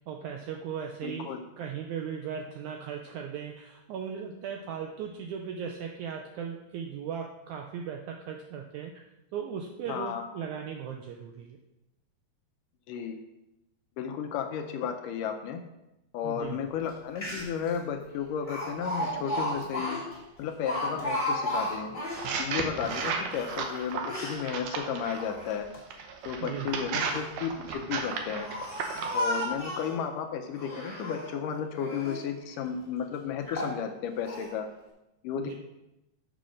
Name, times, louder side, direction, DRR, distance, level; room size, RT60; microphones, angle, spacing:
voice 1, 0.1-1.3 1.6-9.0 9.3-11.6 16.2-16.6 26.4-26.7 35.4-35.5, right 7 dB, 85° right, 2 dB, 1.7 m, -37 dB
voice 2, 1.0-1.4 9.9-10.2 12.9-13.2 14.0-15.6 16.1-20.0 20.4-21.9 22.4-25.7 26.3-28.5 29.1-34.7 35.2-35.5, left 7 dB, 75° left, 5 dB, 2.1 m, -33 dB
Speech, 16.9-17.0 17.2-17.7 18.5-22.3 22.8-24.4 25.0-25.8 26.7-27.3 28.0-30.0 30.5-31.4 31.7-32.3 32.8-32.9 33.5-33.8 34.3-34.5, left 1 dB, 20° left, 1.5 m, -34 dB
sound 1, 22.1-25.2 25.9-29.2, right 5 dB, 70° right, 2.0 m, -34 dB
6.9 x 6.3 x 6.3 m, 0.91 s
omnidirectional pair, 4.1 m